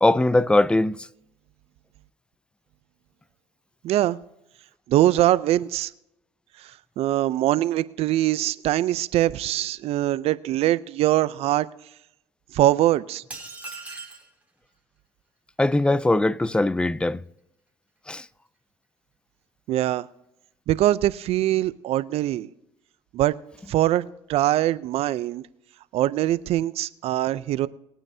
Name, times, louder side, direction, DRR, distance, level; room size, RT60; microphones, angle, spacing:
voice 1, 0.0-1.1 15.6-17.2 18.1-18.3, left 2 dB, 10° left, 0.4 m, -21 dB
voice 2, 3.8-4.2 4.9-5.9 7.0-11.7 12.5-13.2 19.7-20.1 20.7-22.5 23.1-23.3 23.7-24.0 24.3-25.4 25.9-27.7, right 14 dB, 65° right, 0.5 m, -22 dB
sound 1, 13.3-14.3, right 3 dB, 10° right, 3.1 m, -38 dB
21.0 x 8.9 x 2.8 m
supercardioid pair, 75°, 11 cm